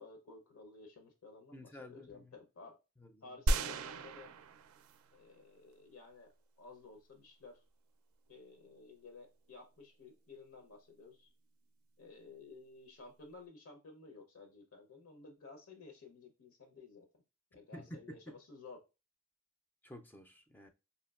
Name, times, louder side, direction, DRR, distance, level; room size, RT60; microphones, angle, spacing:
voice 1, 0.0-2.8 3.2-4.3 5.1-7.6 8.3-11.3 12.0-17.1 17.5-18.8, left 4 dB, 75° left, 0.7 m, -54 dB
voice 2, 1.5-2.3 3.0-3.4 17.7-18.4 19.8-20.7, equal, 10° left, 0.3 m, -51 dB
sound 1, 3.5-5.2 5.7-5.8, right 2 dB, 75° right, 0.4 m, -35 dB
5.0 x 2.7 x 2.3 m
head